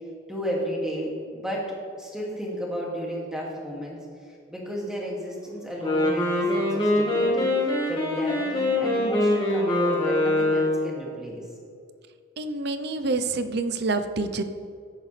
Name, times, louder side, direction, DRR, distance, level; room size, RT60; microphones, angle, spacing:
voice 1, 0.3-4.0 4.3-11.4, equal, 5° right, -4 dB, 2.3 m, -33 dB
Wind instrument woodwind instrument, 5.7-11.0, left 1 dB, 25° left, 2.0 m, -23 dB
voice 2, 12.4-14.4, right 3 dB, 55° right, 9 dB, 0.7 m, -27 dB
14.0 x 10.5 x 3.3 m, 2.3 s
head